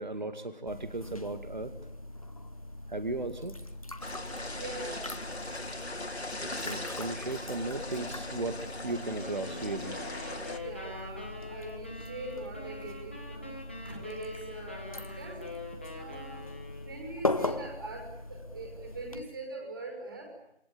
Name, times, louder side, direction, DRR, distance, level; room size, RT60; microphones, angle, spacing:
voice 1, 0.0-1.7 2.9-3.6 6.6-10.0 14.9-15.0, right 2 dB, 45° right, 11 dB, 2.3 m, -36 dB
sound 1, 0.7-19.2, left 2 dB, 35° left, 1.6 m, -40 dB
sound 2, 4.0-10.6, left 2 dB, 80° left, 3.7 m, -39 dB
voice 2, 4.6-5.1 10.6-15.5 16.0-16.5 16.8-20.3, right 2 dB, 20° right, 1 dB, 5.8 m, -43 dB
sound 3, 9.2-17.1, left 2 dB, 10° left, 1.5 m, -45 dB
28.5 x 22.0 x 8.9 m, 0.80 s
figure-of-eight pair, 175°, 32 cm